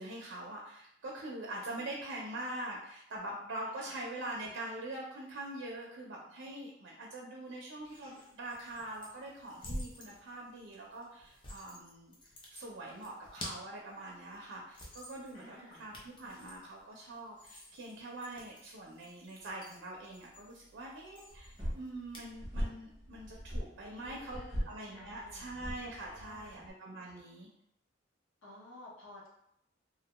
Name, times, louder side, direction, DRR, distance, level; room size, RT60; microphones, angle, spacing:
voice 1, 0.0-12.1 12.5-27.5, right 1 dB, 65° right, -2 dB, 0.5 m, -44 dB
sound 1, 7.8-22.3, equal, 25° left, 0.5 m, -50 dB
voice 2, 15.3-15.8 23.8-24.6 24.9-25.7 26.0-26.6 28.4-29.3, left 1 dB, 90° left, -4 dB, 0.9 m, -53 dB
sound 2, 21.3-26.7, equal, 25° right, 0.7 m, -40 dB
2.5 x 2.1 x 2.9 m, 0.78 s
head